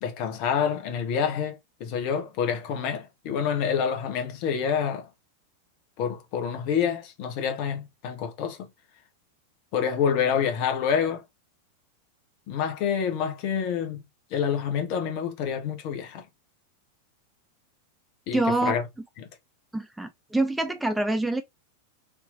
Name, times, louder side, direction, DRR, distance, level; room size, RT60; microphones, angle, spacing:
voice 1, 0.0-5.1 6.0-8.6 9.7-11.2 12.5-14.0 14.3-16.2 18.3-18.8 19.2-19.3, left 7 dB, 45° left, 0.9 m, -27 dB
voice 2, 18.3-18.7 19.7-21.4, right 2 dB, 5° right, 0.3 m, -25 dB
3.4 x 2.8 x 2.5 m
figure-of-eight pair, 90°, 0 cm